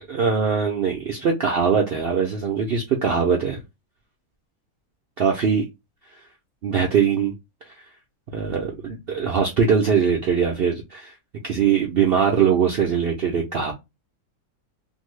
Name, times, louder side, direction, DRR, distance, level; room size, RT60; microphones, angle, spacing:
voice 1, 0.1-3.6 5.2-5.7 6.6-7.3 7.7-7.8 8.3-11.1 11.4-13.7, right 6 dB, 75° right, 0.5 m, -21 dB
2.7 x 2.6 x 3.0 m
omnidirectional pair, 1.7 m